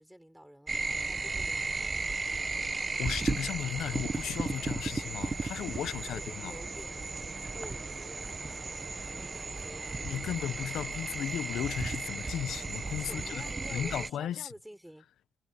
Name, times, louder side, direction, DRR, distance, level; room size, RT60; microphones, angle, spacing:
voice 1, 0.0-2.1 5.8-7.2 7.5-10.5 13.0-15.1, equal, 5° right, 4.6 m, -50 dB
sound 1, 0.7-14.1, right 3 dB, 30° right, 1.2 m, -35 dB
voice 2, 3.0-6.5 10.0-13.4 13.7-14.5, left 10 dB, 75° left, 0.9 m, -35 dB
cardioid pair, 90°, 0 cm